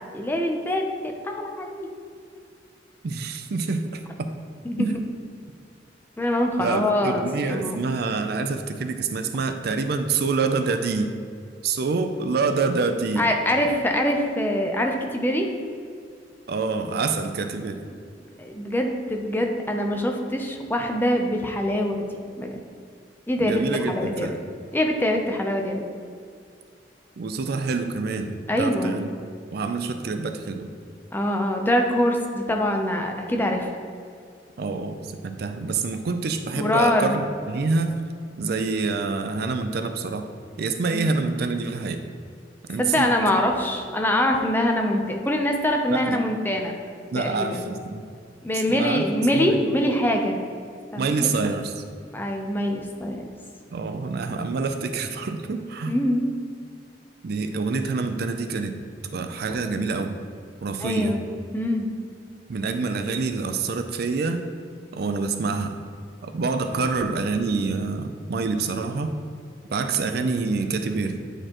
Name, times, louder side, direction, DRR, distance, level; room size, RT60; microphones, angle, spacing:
voice 1, 0.1-0.8 1.2-1.9 4.6-5.0 6.2-7.8 13.2-15.5 18.4-22.0 22.4-22.6 23.3-24.3 24.7-25.8 28.5-29.0 31.1-33.7 36.6-37.2 40.9-41.1 42.8-46.7 47.1-47.7 48.4-50.4 50.9-51.4 52.1-53.2 55.9-56.3 60.8-61.2 61.5-61.9, left 1 dB, 10° left, 2 dB, 0.6 m, -24 dB
voice 2, 3.0-4.3 4.8-5.0 6.6-11.1 11.6-13.3 16.5-17.8 23.4-24.4 27.2-29.1 29.5-30.7 34.6-38.0 38.4-40.3 40.6-42.0 42.7-43.1 45.9-46.2 47.1-48.0 48.5-49.0 49.3-49.7 51.0-51.8 53.7-56.0 57.2-58.8 59.1-60.2 60.6-61.2 62.5-64.4 64.9-65.8 66.2-69.1 69.7-71.2, right 4 dB, 60° right, 7 dB, 0.4 m, -26 dB
9.8 x 4.4 x 3.0 m, 2.2 s
head